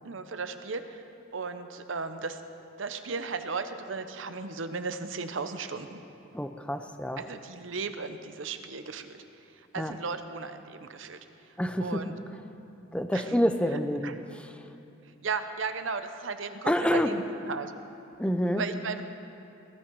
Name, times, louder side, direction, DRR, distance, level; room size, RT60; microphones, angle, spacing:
voice 1, 0.0-1.0 1.3-2.4 2.8-6.0 7.2-9.2 9.7-11.2 11.8-12.1 13.1-13.2 14.0-14.1 15.2-17.0 17.5-17.7 18.6-19.0, right 4 dB, 80° right, 9 dB, 0.8 m, -35 dB
voice 2, 6.3-7.3 9.7-9.9 11.6-12.2 12.9-14.7 16.7-17.2 18.2-18.7, equal, 5° left, 7 dB, 0.6 m, -28 dB
18.5 x 13.0 x 4.7 m, 2.7 s
head